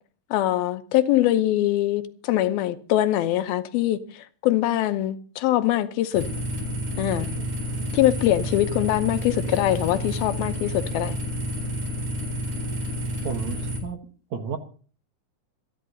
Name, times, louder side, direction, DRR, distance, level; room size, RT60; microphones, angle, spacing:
voice 1, 0.3-4.0 4.4-6.3 7.0-7.3 7.9-11.2, left 13 dB, 85° left, 2.8 m, -23 dB
sound 1, 6.1-13.8, equal, 40° right, 5.0 m, -30 dB
voice 2, 13.2-14.0 14.3-14.6, right 6 dB, 60° right, 2.3 m, -32 dB
26.5 x 11.5 x 2.9 m
omnidirectional pair, 4.2 m